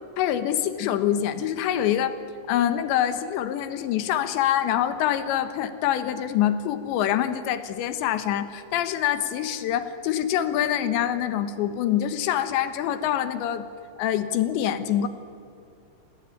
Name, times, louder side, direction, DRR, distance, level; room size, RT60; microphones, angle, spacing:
voice 1, 0.2-2.2 2.5-13.7 14.0-15.1, left 10 dB, 85° left, 11 dB, 3.5 m, -25 dB
27.5 x 19.0 x 9.8 m, 2.4 s
omnidirectional pair, 5.0 m